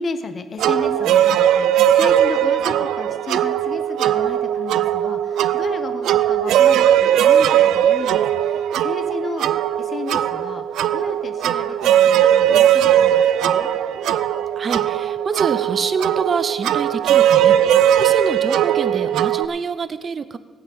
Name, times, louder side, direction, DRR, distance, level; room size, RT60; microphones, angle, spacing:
voice 1, 0.0-9.5 9.8-10.6 10.9-13.1 13.4-13.7, left 4 dB, 45° left, 9 dB, 0.9 m, -33 dB
sound 1, 0.6-19.4, right 10 dB, 80° right, 0.5 m, -18 dB
voice 2, 14.6-20.4, right 5 dB, 40° right, 13 dB, 0.8 m, -26 dB
16.0 x 5.9 x 8.7 m, 1.4 s
cardioid pair, 90°, 0 cm